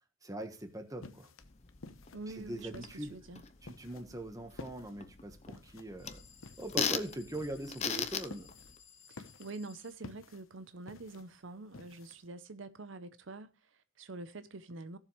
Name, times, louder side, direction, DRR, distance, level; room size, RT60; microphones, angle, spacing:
voice 1, 0.2-1.3 2.3-3.1 3.6-6.2 6.6-8.5, right 1 dB, 15° right, 1.3 m, -42 dB
sound 1, 0.6-12.3, left 3 dB, 90° left, 1.0 m, -53 dB
sound 2, 1.4-8.8, left 6 dB, 35° left, 0.7 m, -40 dB
voice 2, 2.1-3.4 9.1-15.0, right 3 dB, 70° right, 0.7 m, -46 dB
sound 3, 6.0-10.0, left 8 dB, 70° left, 2.8 m, -59 dB
16.0 x 7.2 x 3.2 m
head